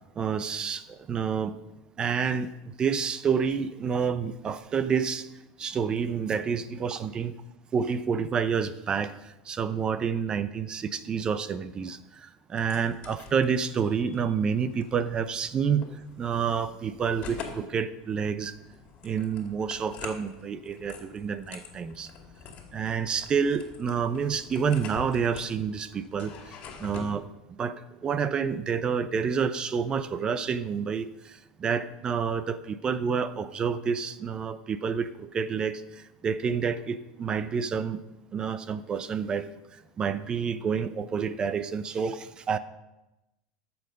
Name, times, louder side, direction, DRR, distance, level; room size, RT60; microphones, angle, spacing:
voice 1, 0.2-1.6 2.0-5.3 5.6-7.3 7.7-9.1 9.5-15.9 16.2-18.6 19.0-22.1 22.7-26.3 26.8-27.3 27.6-31.3 31.6-35.8 36.2-38.0 38.3-39.5 40.0-42.6, right 6 dB, 30° right, 14 dB, 0.6 m, -28 dB
sound 1, 12.5-27.1, left 6 dB, 45° left, 2.4 m, -46 dB
13.5 x 7.0 x 5.3 m, 0.98 s
supercardioid pair, 120°, 3 cm